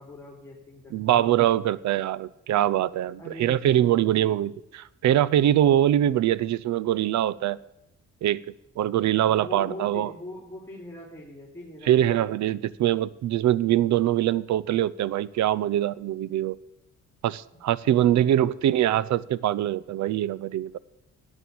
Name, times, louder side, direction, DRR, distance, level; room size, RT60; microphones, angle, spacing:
voice 1, 0.0-1.3 3.2-4.3 9.2-12.6 17.8-18.7, left 1 dB, 10° left, 3.3 m, -43 dB
voice 2, 0.9-7.6 8.2-8.4 8.8-10.1 11.9-16.6 17.2-20.7, right 12 dB, 65° right, 0.6 m, -23 dB
12.5 x 9.0 x 7.1 m
cardioid pair, 90°, 30 cm